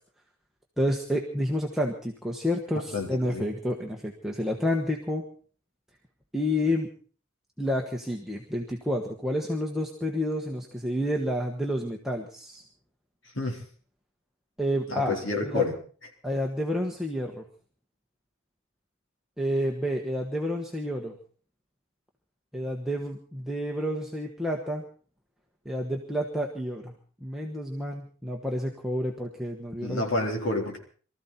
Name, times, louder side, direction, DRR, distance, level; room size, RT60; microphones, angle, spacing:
voice 1, 0.8-5.2 6.3-6.9 7.6-12.6 14.6-15.2 15.4-15.7 16.2-17.4 19.4-21.2 22.5-24.8 25.6-26.9 27.2-30.1, equal, ahead, 0 dB, 1.3 m, -29 dB
voice 2, 2.9-3.5 13.3-13.6 14.9-15.7 29.8-30.8, left 2 dB, 60° left, 0 dB, 4.1 m, -29 dB
24.0 x 14.0 x 4.3 m, 0.43 s
head